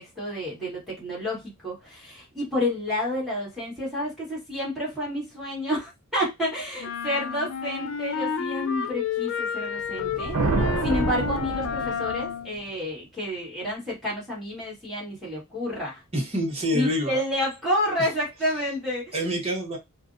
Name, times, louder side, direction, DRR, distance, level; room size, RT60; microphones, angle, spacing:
voice 1, 0.0-10.4 10.8-16.0 16.7-19.3, left 1 dB, ahead, -6 dB, 1.2 m, -30 dB
sound 1, 6.8-12.5, left 6 dB, 65° left, 0.4 m, -30 dB
sound 2, 9.9-12.4, right 3 dB, 75° right, 0.5 m, -27 dB
voice 2, 16.1-17.2 19.1-19.8, equal, 30° right, 0 dB, 0.8 m, -26 dB
2.5 x 2.0 x 2.4 m, 0.21 s
head